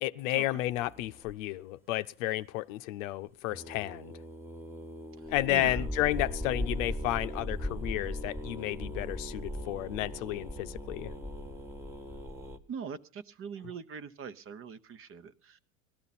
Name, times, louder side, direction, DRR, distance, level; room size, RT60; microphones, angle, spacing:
voice 1, 0.0-4.1 5.3-11.1, left 16 dB, 75° left, 0.7 m, -32 dB
sound 1, 0.7-1.3 3.5-12.6, equal, 5° right, 1.1 m, -39 dB
voice 2, 5.5-5.9 12.7-15.6, right 7 dB, 35° right, 0.9 m, -42 dB
17.5 x 13.5 x 4.2 m
supercardioid pair, 115°, 40 cm